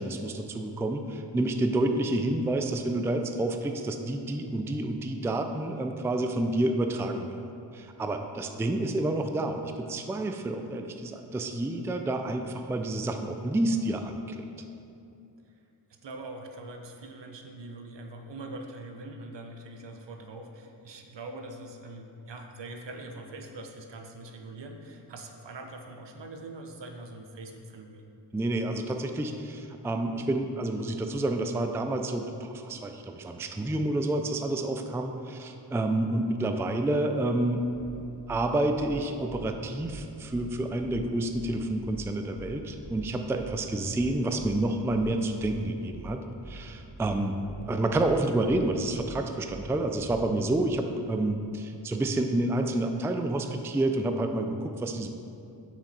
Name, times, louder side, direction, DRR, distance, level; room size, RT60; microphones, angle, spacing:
voice 1, 0.0-7.4 7.7-14.4 28.3-37.6 38.3-47.4 47.6-55.1, right 1 dB, 5° right, 6 dB, 0.3 m, -29 dB
voice 2, 16.0-28.0, right 2 dB, 70° right, 4 dB, 0.9 m, -43 dB
sound 1, 37.5-50.5, right 1 dB, 40° right, 1.4 m, -46 dB
6.4 x 6.3 x 4.2 m, 2.6 s
wide cardioid pair, 70°, 45 cm